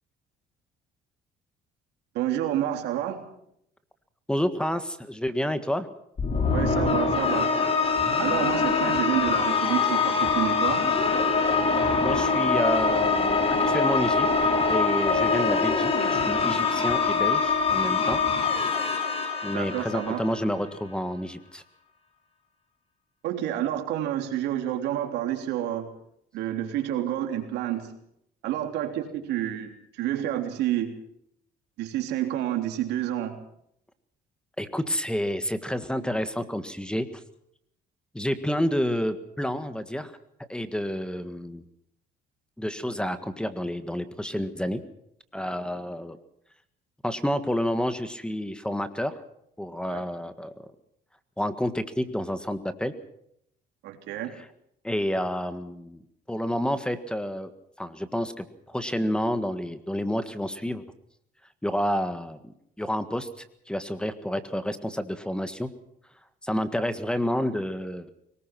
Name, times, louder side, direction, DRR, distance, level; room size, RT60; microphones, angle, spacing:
voice 1, 2.1-3.2 6.5-7.5 8.2-10.9 19.5-20.2 23.2-25.9 26.3-27.9 28.4-30.9 31.8-33.4 49.9-50.0 53.8-54.3, right 12 dB, 90° right, 5 dB, 3.4 m, -29 dB
voice 2, 4.3-5.9 12.0-14.3 14.7-18.2 19.4-21.6 34.6-37.2 38.1-40.1 40.5-41.6 42.6-44.8 45.3-46.2 47.0-49.2 49.6-50.7 51.4-52.9 54.3-54.5 54.8-56.0 56.3-57.5 57.8-60.8 61.6-65.7 66.4-68.1, equal, 5° left, 11 dB, 1.6 m, -29 dB
sound 1, 6.2-20.6, left 4 dB, 35° left, 4.5 m, -24 dB
22.0 x 20.0 x 6.1 m, 0.73 s
cardioid pair, 110°, 17 cm